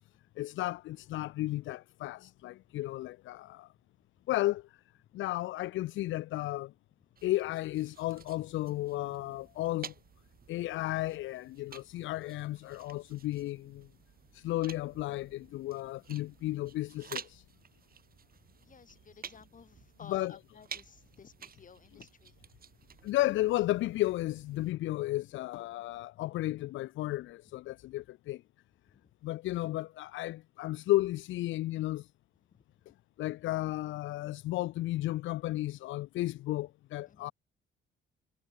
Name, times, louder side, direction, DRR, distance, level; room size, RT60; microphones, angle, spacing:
voice 1, 0.4-3.7 4.3-4.6 5.1-6.7 7.2-9.9 10.5-13.9 14.3-17.4 20.1-20.3 23.0-28.4 29.2-32.1 33.2-37.3, left 16 dB, 75° left, 0.4 m, -33 dB
sound 1, 7.2-24.7, right 7 dB, 50° right, 2.6 m, -52 dB
voice 2, 18.5-22.5 22.8-22.9 28.9-29.1 32.5-32.6 37.1-37.3, left 6 dB, 40° left, 2.7 m, -54 dB
cardioid pair, 90°, 20 cm